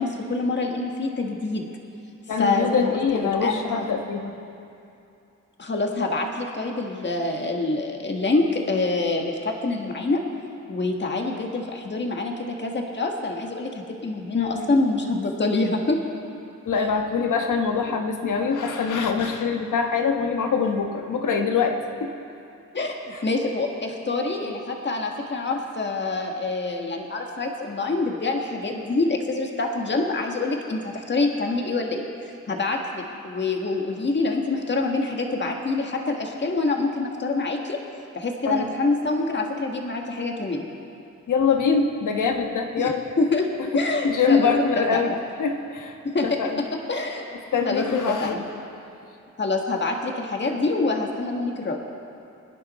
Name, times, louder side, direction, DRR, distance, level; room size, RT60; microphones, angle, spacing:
voice 1, 0.0-1.7 2.4-3.9 5.6-10.2 10.7-16.0 16.8-16.9 22.7-32.1 32.5-37.8 38.1-40.6 42.8-42.9 43.2-43.5 43.7-45.2 46.0-47.2 47.6-48.5 49.4-51.8, left 3 dB, 35° left, 2 dB, 1.7 m, -26 dB
voice 2, 2.3-4.3 14.3-14.7 16.7-22.1 23.1-23.2 38.4-38.7 41.3-43.0 43.7-45.1 45.4-46.0 46.4-46.6 47.5-48.4, left 5 dB, 80° left, 4 dB, 1.4 m, -24 dB
23.5 x 10.5 x 4.3 m, 2.6 s
cardioid pair, 95°, 31 cm